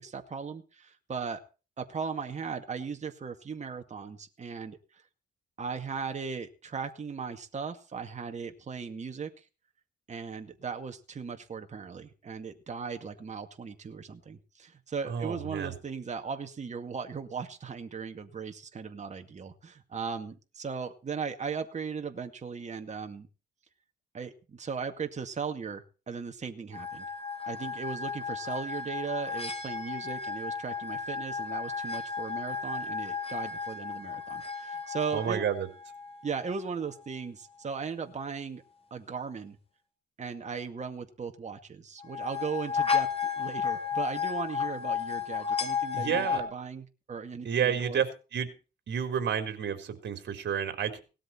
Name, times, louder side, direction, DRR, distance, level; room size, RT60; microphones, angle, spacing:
voice 1, 0.0-1.4 1.8-5.0 5.6-9.5 10.1-23.3 24.1-27.1 27.5-35.4 36.2-38.6 38.9-39.6 40.2-48.1, right 5 dB, 35° right, 6 dB, 2.1 m, -37 dB
voice 2, 15.1-15.8 35.1-35.7 45.9-46.4 47.4-48.5 48.9-51.0, right 8 dB, 60° right, 8 dB, 4.0 m, -30 dB
sound 1, 26.7-36.6 42.0-46.4, left 6 dB, 30° left, 4.6 m, -33 dB
18.5 x 13.0 x 4.5 m, 0.34 s
cardioid pair, 90°, 20 cm